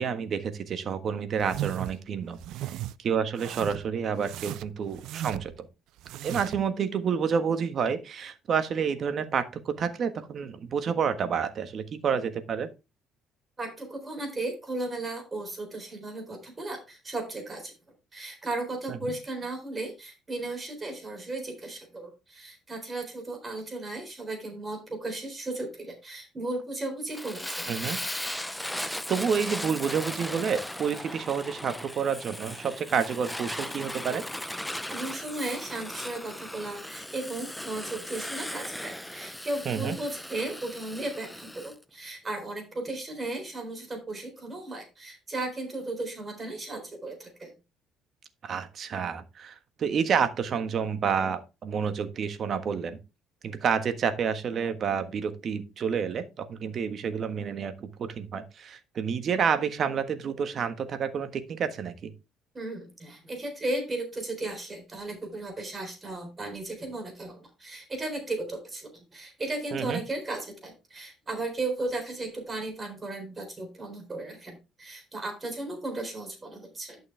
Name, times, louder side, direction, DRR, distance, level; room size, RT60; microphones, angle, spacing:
voice 1, 0.0-5.5 6.2-12.7 18.9-19.0 27.7-28.0 28.9-34.3 39.6-40.0 48.4-53.0 53.4-62.1 69.7-70.0, right 6 dB, 45° right, 10 dB, 1.4 m, -29 dB
sound 1, 1.4-2.0 2.4-2.9 3.4-3.9 4.2-5.6 6.0-6.7, right 13 dB, 80° right, 0.5 m, -36 dB
voice 2, 13.6-17.7 18.1-27.7 34.9-47.5 62.5-77.0, right 2 dB, 25° right, 4 dB, 4.0 m, -35 dB
Fire, 27.1-41.7, left 1 dB, 5° left, 0.7 m, -37 dB
11.5 x 6.4 x 3.4 m, 0.27 s
cardioid pair, 120°, 0 cm